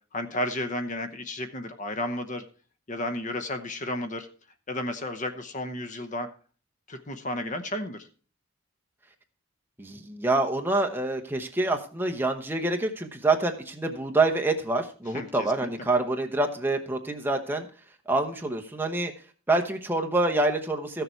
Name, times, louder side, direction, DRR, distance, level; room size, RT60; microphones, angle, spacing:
voice 1, 0.1-2.4 2.9-4.3 4.7-6.3 6.9-8.1 15.1-15.9, left 1 dB, 35° left, 8 dB, 0.9 m, -32 dB
voice 2, 9.8-17.7 18.1-19.1 19.5-21.0, right 2 dB, 10° right, 3 dB, 0.9 m, -26 dB
14.0 x 6.8 x 4.5 m, 0.38 s
head